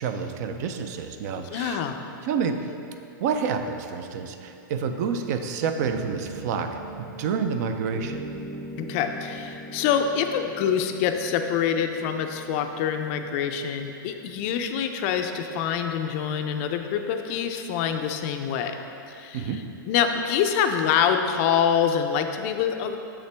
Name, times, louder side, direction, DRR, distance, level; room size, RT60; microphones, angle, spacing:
voice 1, 0.0-1.9 2.2-2.6 3.2-8.3 19.3-19.6, right 6 dB, 50° right, 7 dB, 0.5 m, -29 dB
voice 2, 1.5-2.0 8.8-18.7 19.1-19.5 19.9-23.0, left 8 dB, 40° left, 6 dB, 0.4 m, -25 dB
sound 1, 5.8-14.6, right 2 dB, 70° right, 0.9 m, -41 dB
6.8 x 5.7 x 3.3 m, 2.7 s
supercardioid pair, 155°, 11 cm